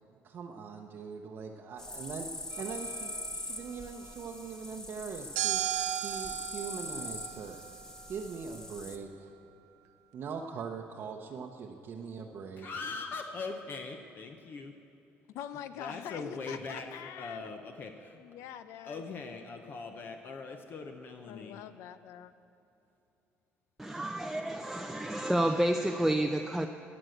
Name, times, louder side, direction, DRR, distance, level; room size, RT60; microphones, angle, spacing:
voice 1, 0.2-2.3 2.6-5.6 6.0-7.6 8.1-9.3 10.1-12.7, right 5 dB, 50° right, 0.8 m, -41 dB
sound 1, 1.8-9.0, left 1 dB, 15° left, 0.9 m, -42 dB
sound 2, 2.5-3.4 5.4-7.9, right 14 dB, 90° right, 0.6 m, -36 dB
voice 2, 12.5-14.7 15.8-18.2 18.8-21.6, left 4 dB, 45° left, 0.8 m, -41 dB
voice 3, 15.3-17.5 18.2-19.0 21.3-22.3, left 10 dB, 80° left, 0.7 m, -44 dB
voice 4, 23.8-26.7, right 1 dB, 5° right, 0.5 m, -30 dB
17.0 x 6.3 x 7.9 m
cardioid pair, 120°, 5 cm